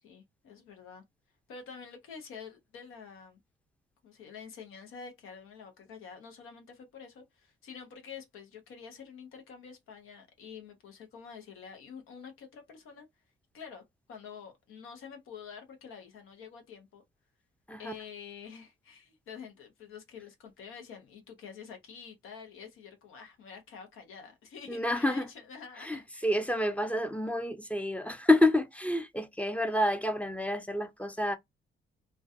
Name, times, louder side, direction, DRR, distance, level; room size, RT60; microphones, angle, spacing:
voice 1, 0.0-1.0 1.5-3.4 4.0-13.1 13.5-13.8 14.1-17.0 17.8-26.3, left 6 dB, 80° left, 0.9 m, -48 dB
voice 2, 24.7-25.3 25.8-31.4, left 1 dB, 5° left, 0.5 m, -28 dB
2.3 x 2.2 x 2.6 m
cardioid pair, 70°, 21 cm